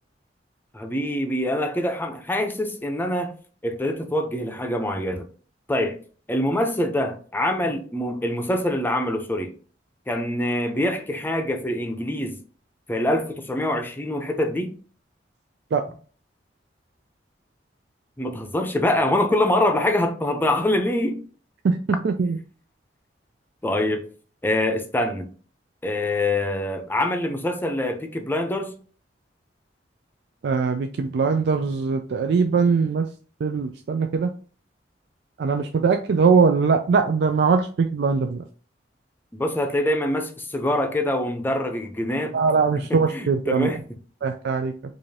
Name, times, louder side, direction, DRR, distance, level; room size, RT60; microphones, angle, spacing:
voice 1, 0.7-3.3 3.6-5.3 5.7-6.0 6.3-9.5 10.1-12.4 12.9-14.7 18.2-21.2 23.6-24.0 24.4-25.3 25.8-28.7 39.3-42.4 42.9-43.8, left 1 dB, 10° left, 0.6 m, -24 dB
voice 2, 22.0-22.4 30.4-33.1 33.4-34.3 35.4-38.4 42.3-43.7 44.2-44.7, right 5 dB, 65° right, 0.3 m, -21 dB
4.8 x 2.6 x 2.7 m
head